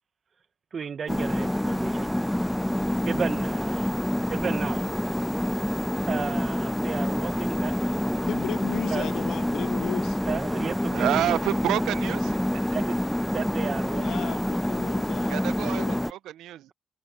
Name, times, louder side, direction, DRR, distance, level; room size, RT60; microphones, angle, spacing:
voice 1, 0.7-2.1 3.1-3.9 4.3-4.9 6.1-8.3 8.9-9.1 10.3-11.4 12.7-13.0 13.3-14.4, right 6 dB, 45° right, 0.9 m, -34 dB
sound 1, 1.1-16.1, left 1 dB, 5° left, 0.8 m, -27 dB
voice 2, 8.3-10.2 13.9-16.0, left 11 dB, 80° left, 0.6 m, -36 dB
voice 3, 10.9-12.5 15.3-16.7, right 13 dB, 85° right, 0.5 m, -29 dB
cardioid pair, 90°, 0 cm